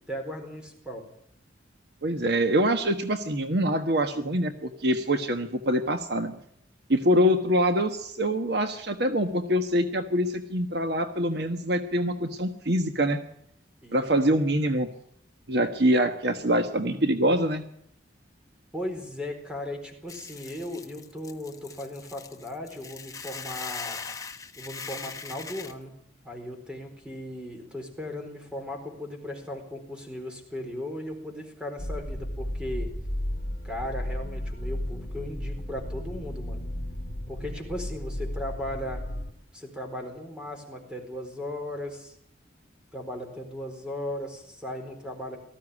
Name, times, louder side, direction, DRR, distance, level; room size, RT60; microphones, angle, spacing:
voice 1, 0.1-1.1 13.8-14.0 18.7-24.0 24.6-26.0 26.2-32.9 33.6-36.6 37.3-39.0 39.5-42.1 42.9-45.4, left 1 dB, 5° right, 4 dB, 4.3 m, -37 dB
voice 2, 2.0-6.3 6.9-13.2 13.9-14.9 15.5-17.6, equal, 55° right, 8 dB, 1.3 m, -25 dB
Hiss / Boiling, 20.1-25.7, left 5 dB, 20° left, 1.2 m, -40 dB
sound 1, 31.8-39.3, left 1 dB, 60° left, 3.3 m, -34 dB
19.0 x 14.5 x 9.8 m, 0.70 s
head